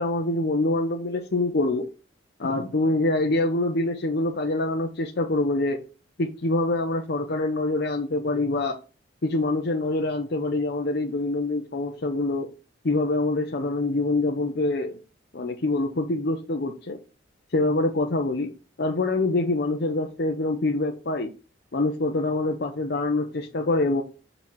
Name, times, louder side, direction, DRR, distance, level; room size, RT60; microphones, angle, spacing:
voice 1, 0.0-1.9 2.4-5.8 6.2-8.8 9.2-12.5 12.8-15.0 15.3-17.0 17.5-18.5 18.8-21.3 21.7-24.0, left 2 dB, 55° left, 3 dB, 0.6 m, -25 dB
5.7 x 3.9 x 4.5 m, 0.33 s
head